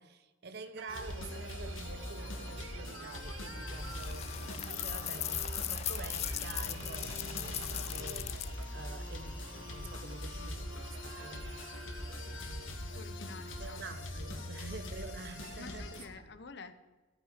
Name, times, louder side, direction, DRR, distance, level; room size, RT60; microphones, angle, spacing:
voice 1, 0.0-13.0 13.6-16.2, right 3 dB, 55° right, 0.7 m, -48 dB
sound 1, 0.8-15.6, right 7 dB, 80° right, 0.5 m, -52 dB
sound 2, 0.9-16.1, left 1 dB, 80° left, 1.9 m, -42 dB
sound 3, 3.8-8.6, left 13 dB, 35° left, 0.3 m, -39 dB
voice 2, 12.9-13.9 15.6-16.7, left 4 dB, 60° left, 1.0 m, -49 dB
15.0 x 8.9 x 5.0 m
head